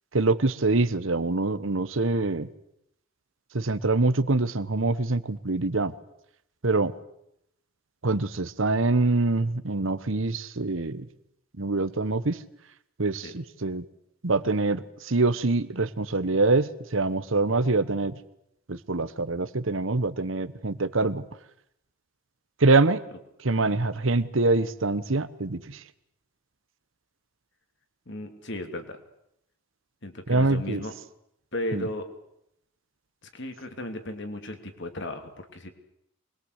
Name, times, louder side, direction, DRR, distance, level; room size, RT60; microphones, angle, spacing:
voice 1, 0.1-2.5 3.5-5.9 6.6-6.9 8.0-11.1 11.6-12.4 13.0-13.8 14.2-18.2 18.7-21.2 22.6-23.0 23.4-25.8 30.3-30.8 31.7-31.9, right 3 dB, 65° right, 15 dB, 1.1 m, -25 dB
voice 2, 23.5-23.8 28.1-29.0 30.0-30.9 31.5-32.1 33.2-35.7, left 1 dB, 55° left, 6 dB, 2.9 m, -35 dB
24.5 x 21.5 x 8.1 m, 0.78 s
head